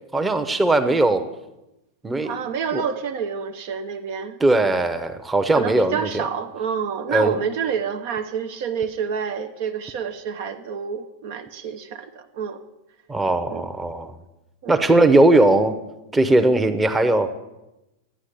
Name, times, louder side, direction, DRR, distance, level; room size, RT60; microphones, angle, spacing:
voice 1, 0.1-1.2 2.0-2.4 2.7-2.9 4.4-6.2 7.1-7.4 13.1-14.1 14.7-15.7 16.1-17.4, right 2 dB, 10° right, 8 dB, 0.9 m, -19 dB
voice 2, 2.2-4.4 5.5-12.6 13.5-13.7 14.6-14.8, right 7 dB, 50° right, 7 dB, 0.7 m, -28 dB
12.5 x 9.6 x 6.8 m, 0.96 s
figure-of-eight pair, 90°, 0 cm